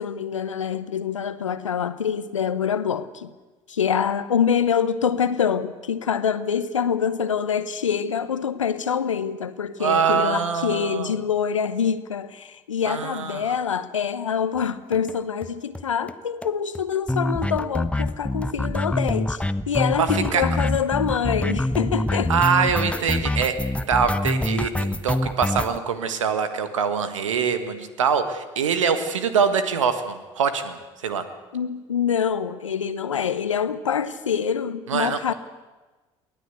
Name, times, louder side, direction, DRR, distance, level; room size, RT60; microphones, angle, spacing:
voice 1, 0.0-3.3 3.7-22.3 31.5-35.3, left 7 dB, 90° left, 0.9 m, -25 dB
voice 2, 9.8-11.1 12.8-13.4 20.0-20.4 22.3-23.6 23.9-31.3 34.9-35.3, right 6 dB, 85° right, 1.6 m, -24 dB
sound 1, 14.9-15.1 15.4-15.5 15.7-15.8 16.1-16.2 16.4-25.8, left 1 dB, 10° left, 0.9 m, -25 dB
23.5 x 16.5 x 8.2 m
hypercardioid pair, 55°, 16 cm